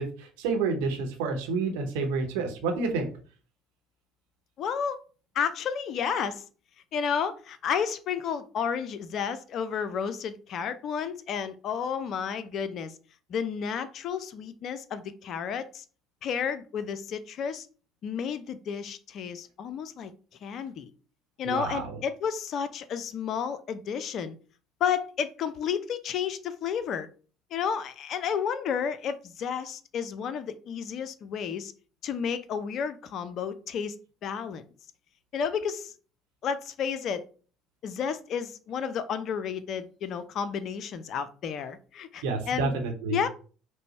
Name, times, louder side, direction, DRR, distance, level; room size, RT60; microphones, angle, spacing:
voice 1, 0.0-3.1 21.4-22.0 42.2-43.2, right 4 dB, 65° right, 0.9 m, -29 dB
voice 2, 4.6-5.0 5.3-6.4 6.9-13.0 13.3-15.8 16.2-17.7 18.0-20.1 20.4-20.9 21.4-24.4 24.8-27.1 27.5-31.7 32.0-34.0 34.2-34.6 35.3-35.9 36.4-37.2 37.8-42.8 43.1-43.3, left 7 dB, 50° left, 0.4 m, -31 dB
5.1 x 2.1 x 4.2 m
figure-of-eight pair, 55°, 0 cm